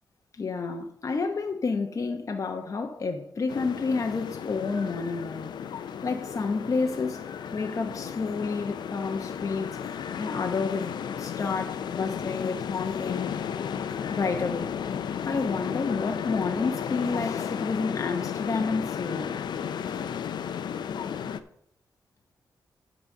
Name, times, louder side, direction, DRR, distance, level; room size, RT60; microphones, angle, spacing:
voice 1, 0.3-5.6 6.0-7.3 7.5-13.3 14.1-14.7 15.3-19.4, left 4 dB, 45° left, 0.9 m, -30 dB
sound 1, 3.5-21.4, left 8 dB, 80° left, 0.5 m, -33 dB
10.0 x 4.0 x 7.2 m
cardioid pair, 80°, 7 cm